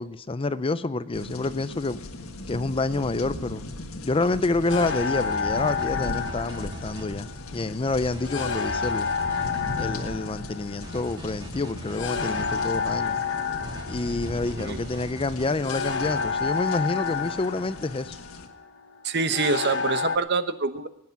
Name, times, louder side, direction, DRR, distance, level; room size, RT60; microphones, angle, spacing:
voice 1, 0.0-2.0 2.5-3.6 4.0-9.1 9.8-13.2 13.9-18.2, left 3 dB, 25° left, 14 dB, 0.5 m, -28 dB
sound 1, 1.1-18.5, left 1 dB, 80° left, 1.6 m, -39 dB
sound 2, 4.7-20.2, left 5 dB, 60° left, 1.1 m, -30 dB
sound 3, 5.2-7.1 8.0-9.9 10.8-12.7 13.6-15.5, right 1 dB, 20° right, 1.6 m, -41 dB
voice 2, 19.0-20.9, right 4 dB, 50° right, 11 dB, 1.0 m, -25 dB
20.0 x 9.6 x 5.9 m, 0.85 s
head